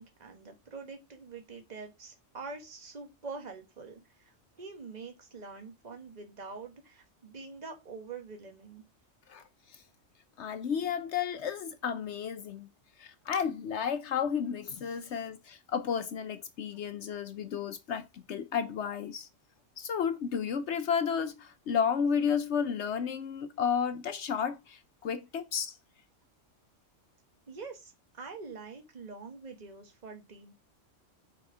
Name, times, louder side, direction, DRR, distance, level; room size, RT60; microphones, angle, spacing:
voice 1, 0.0-8.8 27.5-30.5, right 4 dB, 35° right, 1.4 m, -45 dB
voice 2, 10.4-12.7 13.0-19.3 19.8-25.8, left 7 dB, 70° left, 0.9 m, -32 dB
7.4 x 4.3 x 4.8 m
omnidirectional pair, 1.3 m